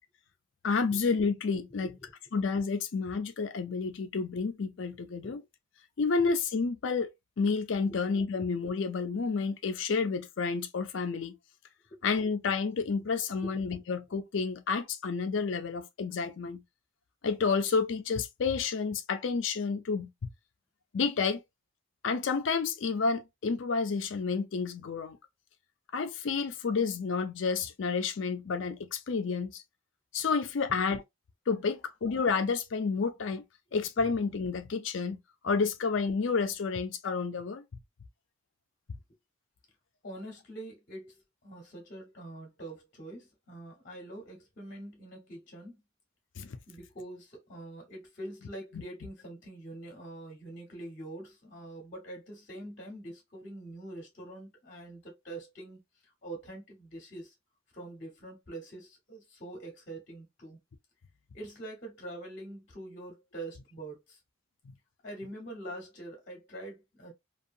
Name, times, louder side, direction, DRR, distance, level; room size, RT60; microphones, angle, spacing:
voice 1, 0.6-1.9 2.3-5.4 6.0-7.1 7.4-11.4 12.0-16.6 17.2-20.3 20.9-21.4 22.0-25.2 25.9-29.6 30.1-31.0 31.5-33.4 33.7-37.6 46.4-46.6 48.7-48.8, left 5 dB, 65° left, 0.5 m, -30 dB
voice 2, 1.7-2.1 5.2-5.4 6.2-6.3 11.9-12.3 13.3-13.7 31.7-31.8 40.0-45.8 46.7-57.3 57.7-60.6 61.3-64.2 65.0-67.1, right 1 dB, 40° left, 0.9 m, -45 dB
2.7 x 2.3 x 2.5 m
head